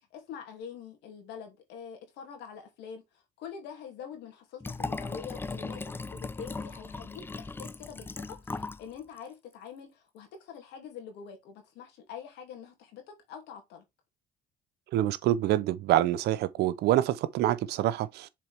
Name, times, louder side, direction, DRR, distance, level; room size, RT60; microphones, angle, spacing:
voice 1, 0.1-5.8 6.1-13.8, left 7 dB, 85° left, 2.5 m, -45 dB
Liquid, 4.6-8.8 9.2-9.3, left 3 dB, 15° left, 0.4 m, -38 dB
voice 2, 14.9-18.3, right 13 dB, 75° right, 0.7 m, -26 dB
7.0 x 4.4 x 3.5 m
cardioid pair, 110°, 17 cm